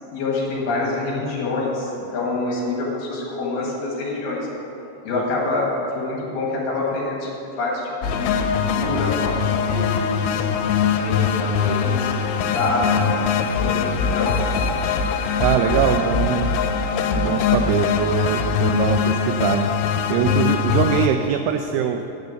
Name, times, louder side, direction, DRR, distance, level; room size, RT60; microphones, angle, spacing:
voice 1, 0.1-4.5 5.0-7.3 7.6-9.4 9.7-10.5 10.9-14.5, left 2 dB, 65° left, -3 dB, 3.3 m, -26 dB
sound 1, 8.0-21.1, left 6 dB, 90° left, 3.0 m, -22 dB
voice 2, 15.4-16.5 17.2-22.0, right 8 dB, 90° right, 6 dB, 2.3 m, -22 dB
9.3 x 7.0 x 7.8 m, 3.0 s
omnidirectional pair, 5.2 m